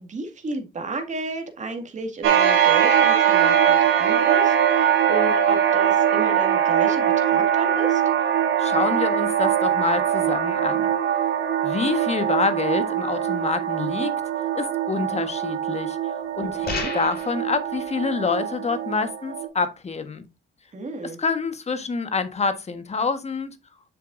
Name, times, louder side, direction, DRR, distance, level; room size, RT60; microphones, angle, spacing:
voice 1, 0.0-8.0 16.4-16.9 20.7-21.2, right 3 dB, 35° right, 2.0 m, -32 dB
sound 1, 2.2-19.5, right 9 dB, 90° right, 2.4 m, -22 dB
voice 2, 8.6-10.9 11.6-14.1 14.5-20.2 21.2-23.5, left 4 dB, 35° left, 1.5 m, -27 dB
sound 2, 16.6-17.4, left 4 dB, 50° left, 4.2 m, -31 dB
7.7 x 6.6 x 2.6 m
cardioid pair, 90°, 20 cm